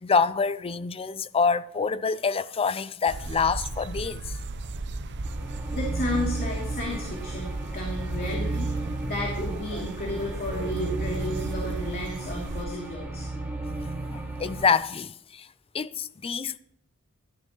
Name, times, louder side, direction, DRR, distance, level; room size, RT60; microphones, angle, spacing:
voice 1, 0.0-4.4 14.1-15.5 15.7-16.6, left 5 dB, 25° left, 0.4 m, -26 dB
sound 1, 3.1-12.7, right 2 dB, 55° right, 0.7 m, -36 dB
sound 2, 5.2-14.7, right 2 dB, 10° right, 2.2 m, -34 dB
voice 2, 5.7-13.3, left 1 dB, 45° left, 2.8 m, -33 dB
16.0 x 12.5 x 3.0 m
head